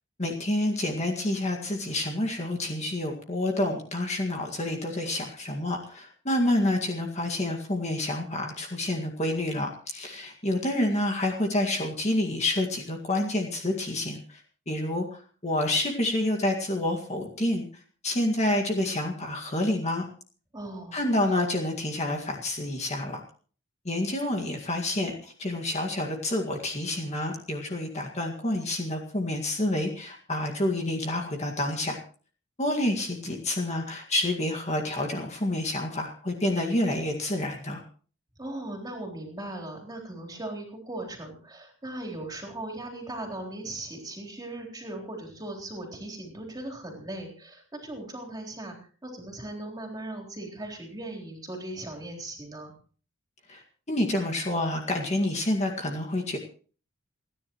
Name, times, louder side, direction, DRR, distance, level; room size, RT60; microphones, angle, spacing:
voice 1, 0.2-14.4 14.7-17.7 18.0-20.1 20.9-23.2 23.9-32.0 32.6-37.8 53.5-53.6 53.9-56.4, left 1 dB, 30° left, 2 dB, 2.0 m, -28 dB
voice 2, 20.5-21.0 38.4-48.7 49.0-52.7, right 1 dB, 20° right, 1 dB, 3.8 m, -38 dB
29.0 x 10.5 x 3.1 m, 0.40 s
head